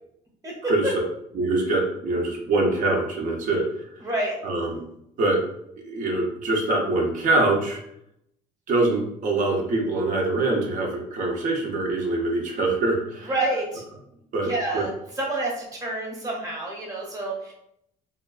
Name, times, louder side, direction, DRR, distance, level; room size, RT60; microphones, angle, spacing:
voice 1, 1.3-3.9 4.4-4.8 5.2-5.4 5.8-7.8 8.7-13.3 14.3-14.8, right 2 dB, 50° right, 0 dB, 0.6 m, -24 dB
voice 2, 4.0-4.4 13.3-13.8 14.4-14.9 15.2-17.5, right 2 dB, 20° right, -3 dB, 0.9 m, -28 dB
2.5 x 2.2 x 2.3 m, 0.76 s
cardioid pair, 110°, 17 cm